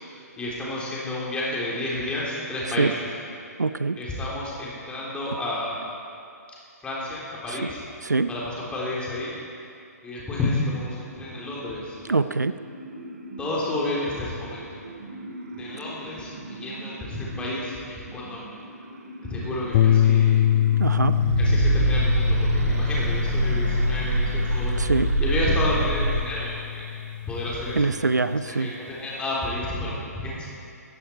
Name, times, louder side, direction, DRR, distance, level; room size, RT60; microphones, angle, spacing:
voice 1, 0.1-3.1 4.0-5.9 6.8-7.8 8.3-9.3 10.0-12.0 13.4-14.6 15.5-18.5 19.3-20.4 21.4-24.8 25.2-27.8 28.4-30.5, left 1 dB, 10° left, -6 dB, 3.6 m, -30 dB
voice 2, 3.6-4.0 7.5-7.7 8.0-8.3 12.1-12.5 20.8-21.1 24.8-25.1 27.8-28.7, right 3 dB, 85° right, 13 dB, 0.5 m, -23 dB
sound 1, 11.1-26.2, right 2 dB, 60° right, 2.6 m, -28 dB
sound 2, 19.7-28.1, left 11 dB, 35° left, 0.6 m, -24 dB
17.0 x 15.0 x 4.6 m, 2.6 s
figure-of-eight pair, 125°, 9 cm